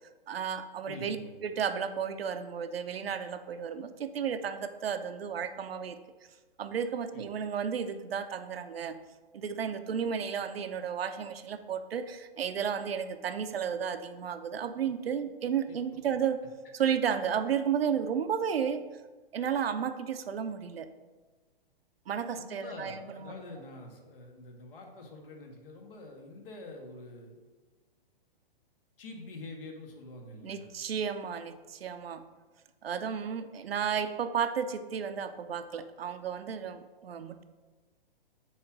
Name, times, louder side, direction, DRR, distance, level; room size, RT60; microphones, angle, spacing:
voice 1, 0.3-1.2 1.4-6.0 6.6-9.0 9.3-16.4 16.7-18.8 19.3-20.9 22.1-23.3 30.4-32.3 32.8-37.4, right 7 dB, 85° right, 9 dB, 0.7 m, -33 dB
voice 2, 0.9-1.3 7.1-7.3 15.7-15.8 22.4-27.4 29.0-30.7, left 2 dB, 70° left, 2 dB, 1.8 m, -46 dB
8.1 x 3.2 x 6.0 m, 1.3 s
hypercardioid pair, 140°, 29 cm